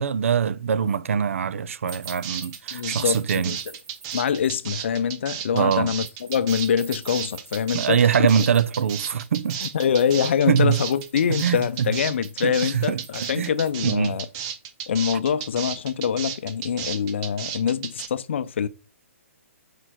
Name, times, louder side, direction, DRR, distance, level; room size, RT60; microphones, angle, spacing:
voice 1, 0.0-3.6 5.5-5.9 7.7-9.6 10.5-10.8 11.4-11.9 12.4-13.5 13.8-14.2, right 7 dB, 60° right, 0.5 m, -23 dB
sound 1, 1.9-18.1, right 9 dB, 20° right, 0.6 m, -33 dB
sound 2, 1.9-4.6 6.0-13.7, right 4 dB, 35° right, 2.4 m, -48 dB
voice 2, 2.7-3.6 4.1-8.0 9.6-14.3 14.9-18.7, left 7 dB, 50° left, 0.6 m, -24 dB
6.5 x 4.6 x 4.5 m
hypercardioid pair, 165°, 8 cm